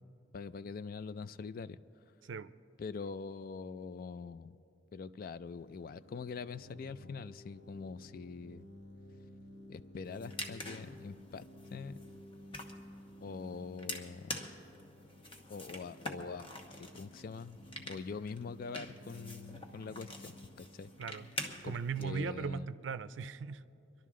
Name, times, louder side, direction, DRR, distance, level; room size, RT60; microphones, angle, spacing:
voice 1, 0.3-1.8 2.8-4.5 4.9-8.7 9.7-11.4 11.7-12.0 13.2-14.4 15.5-16.5 16.8-17.6 17.9-20.9 21.6-22.7, left 5 dB, 50° left, 15 dB, 0.3 m, -44 dB
sound 1, 5.5-23.1, left 1 dB, 75° left, 1.5 m, -55 dB
sound 2, 10.0-22.0, left 1 dB, 30° left, 1.1 m, -46 dB
voice 2, 21.6-23.6, right 5 dB, 80° right, 15 dB, 0.4 m, -38 dB
26.0 x 11.5 x 3.7 m, 2.7 s
head